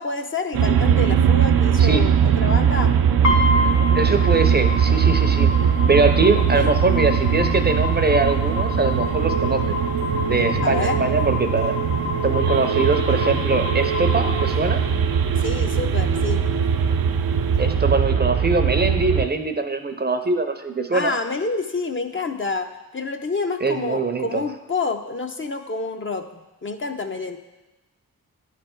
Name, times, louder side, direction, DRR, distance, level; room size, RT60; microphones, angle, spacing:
voice 1, 0.0-2.9 6.3-6.7 10.6-11.0 15.4-16.4 20.9-26.3 26.6-27.4, left 3 dB, 35° left, 6 dB, 0.6 m, -28 dB
sound 1, 0.5-19.3, right 7 dB, 80° right, 0.5 m, -20 dB
sound 2, 3.2-15.2, left 3 dB, 50° left, 1.0 m, -29 dB
voice 2, 3.9-5.5 5.9-9.8 10.2-11.8 12.2-14.8 17.6-21.1 23.6-24.4, right 3 dB, 30° right, 8 dB, 0.6 m, -22 dB
Thunder, 6.5-18.1, left 4 dB, 75° left, 0.9 m, -39 dB
9.8 x 3.3 x 4.4 m, 1.0 s
cardioid pair, 50°, 35 cm